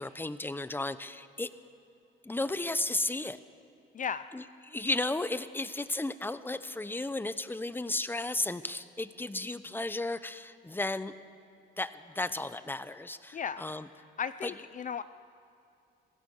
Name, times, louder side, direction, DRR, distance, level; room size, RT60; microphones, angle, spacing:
voice 1, 0.0-1.5 2.2-3.4 4.3-11.1 11.8-13.9 14.4-14.5, left 2 dB, 10° left, 13 dB, 0.9 m, -34 dB
voice 2, 3.9-4.3 13.3-13.6 14.2-15.0, left 7 dB, 40° left, 14 dB, 0.5 m, -35 dB
26.5 x 16.5 x 6.6 m, 2.5 s
cardioid pair, 90°, 20 cm